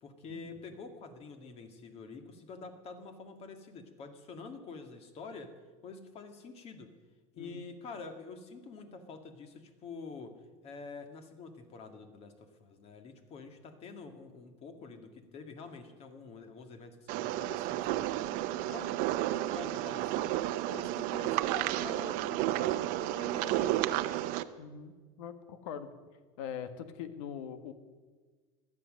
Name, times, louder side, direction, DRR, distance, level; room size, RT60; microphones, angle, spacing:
voice 1, 0.0-5.5 5.8-6.9 7.3-10.4 10.6-20.4 20.7-24.2, left 4 dB, 40° left, 7 dB, 2.0 m, -47 dB
sound 1, 17.1-24.4, right 15 dB, 60° right, 0.8 m, -32 dB
voice 2, 24.6-25.9 26.4-27.7, left 8 dB, 80° left, 11 dB, 1.4 m, -42 dB
17.0 x 12.0 x 6.5 m, 1.4 s
supercardioid pair, 130°, 16 cm